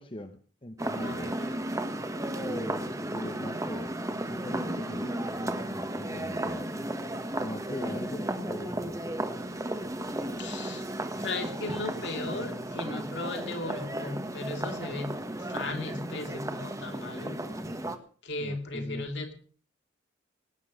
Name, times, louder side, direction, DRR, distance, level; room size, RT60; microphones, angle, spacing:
voice 1, 0.0-1.3 2.4-6.7 7.4-9.2 18.4-19.1, left 1 dB, 25° left, 8 dB, 1.0 m, -41 dB
sound 1, 0.8-18.0, right 1 dB, 15° right, 1.4 m, -34 dB
voice 2, 1.0-1.6 7.7-7.9 10.4-10.9 11.2-17.6 18.2-19.3, left 2 dB, 60° left, 5 dB, 3.0 m, -37 dB
19.0 x 9.5 x 6.5 m, 0.42 s
head